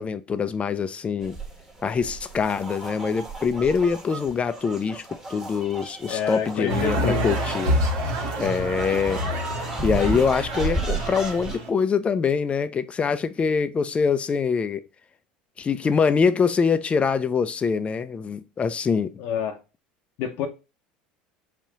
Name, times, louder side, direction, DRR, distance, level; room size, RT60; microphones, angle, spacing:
voice 1, 0.0-1.3 1.8-5.0 5.3-7.7 8.4-9.2 9.6-14.8 15.6-19.2, left 5 dB, 30° left, 0.5 m, -24 dB
sound 1, 1.2-11.6, right 3 dB, 10° right, 1.3 m, -34 dB
voice 2, 6.1-7.3 19.2-19.6 20.2-20.5, left 7 dB, 65° left, 0.8 m, -28 dB
sound 2, 6.7-11.7, equal, 70° right, 1.4 m, -27 dB
5.5 x 2.4 x 3.8 m
hypercardioid pair, 80°, 4 cm